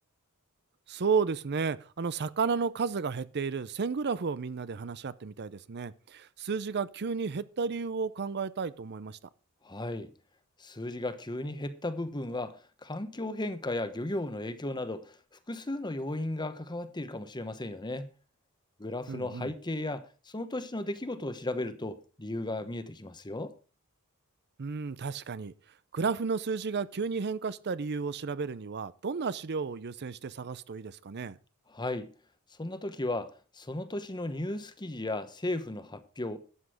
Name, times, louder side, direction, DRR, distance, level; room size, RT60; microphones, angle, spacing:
voice 1, 0.9-9.2 19.1-19.5 24.6-25.5 25.9-31.4, right 5 dB, 50° right, 0.6 m, -32 dB
voice 2, 9.6-10.1 10.6-15.2 15.5-18.1 18.8-23.5 31.7-32.1 32.6-36.4, left 1 dB, 20° left, 1.0 m, -35 dB
12.5 x 8.3 x 4.9 m
head